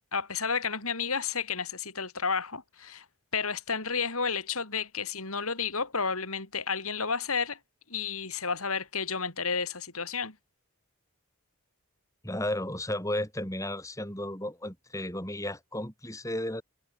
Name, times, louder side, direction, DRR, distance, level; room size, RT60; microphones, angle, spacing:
voice 1, 0.1-3.1 3.3-7.6 7.9-10.4, left 5 dB, 80° left, 5.4 m, -31 dB
voice 2, 12.2-16.6, left 1 dB, 15° left, 6.7 m, -33 dB
head